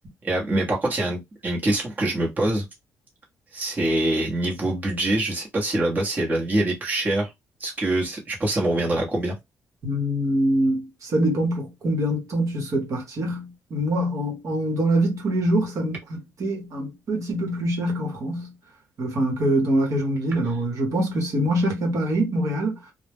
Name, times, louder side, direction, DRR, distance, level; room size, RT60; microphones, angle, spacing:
voice 1, 0.2-2.6 3.5-7.3 7.6-9.4, right 1 dB, 25° right, 0.9 m, -24 dB
voice 2, 9.8-18.5 19.0-22.8, right 1 dB, 55° right, 1.0 m, -24 dB
2.2 x 2.0 x 3.4 m
cardioid pair, 110°, 6 cm